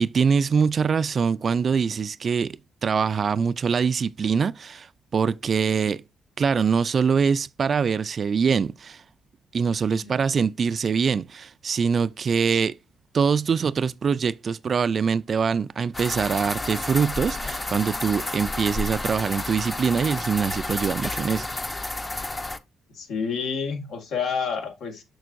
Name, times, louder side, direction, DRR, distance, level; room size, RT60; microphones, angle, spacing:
voice 1, 0.0-4.9 5.1-6.0 6.4-9.0 9.5-12.8 13.1-21.5, right 6 dB, 45° right, 0.3 m, -23 dB
voice 2, 9.9-10.2 12.5-12.6 22.9-25.0, left 6 dB, 75° left, 1.7 m, -29 dB
sound 1, 15.9-22.6, left 2 dB, 20° left, 0.6 m, -31 dB
6.3 x 6.2 x 2.6 m
cardioid pair, 90°, 0 cm